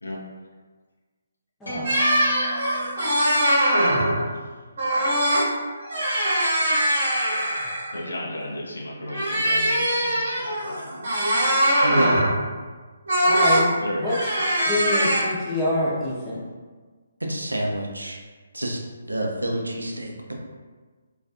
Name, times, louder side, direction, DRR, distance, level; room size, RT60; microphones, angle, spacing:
sound 1, 1.6-4.0, right 4 dB, 90° left, 0.8 m, -38 dB
voice 1, 1.6-2.1 13.2-13.7 14.0-14.2 14.7-16.4, left 1 dB, 10° left, -9 dB, 0.6 m, -26 dB
sound 2, 1.8-4.2 4.8-5.5 5.8-8.0 9.1-12.4 13.1-13.6 14.0-15.2, equal, 50° right, 0.9 m, -22 dB
voice 2, 7.9-11.0 13.8-14.1, left 1 dB, 70° left, -1 dB, 0.5 m, -34 dB
voice 3, 11.8-12.2 17.2-18.2 18.5-20.3, right 1 dB, 80° right, 0 dB, 0.4 m, -28 dB
2.4 x 2.2 x 2.5 m, 1.4 s
figure-of-eight pair, 140°, 0 cm